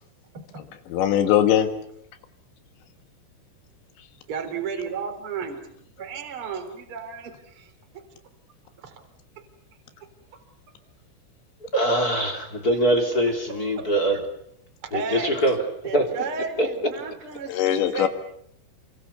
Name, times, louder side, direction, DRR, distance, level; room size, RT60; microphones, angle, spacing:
voice 1, 0.6-1.7 4.0-4.1 17.5-18.1, left 10 dB, 65° left, 9 dB, 3.6 m, -21 dB
voice 2, 4.3-5.6 6.0-7.7 8.8-8.9 9.4-9.5 12.9-13.1 13.8-13.9 14.8-15.4 15.8-17.6 17.9-18.1, right 6 dB, 30° right, 5 dB, 3.6 m, -33 dB
voice 3, 11.7-14.2 14.9-15.6 15.9-16.1 16.6-16.7, right 1 dB, 25° left, 4 dB, 2.6 m, -22 dB
29.5 x 24.5 x 6.9 m, 0.71 s
omnidirectional pair, 6.0 m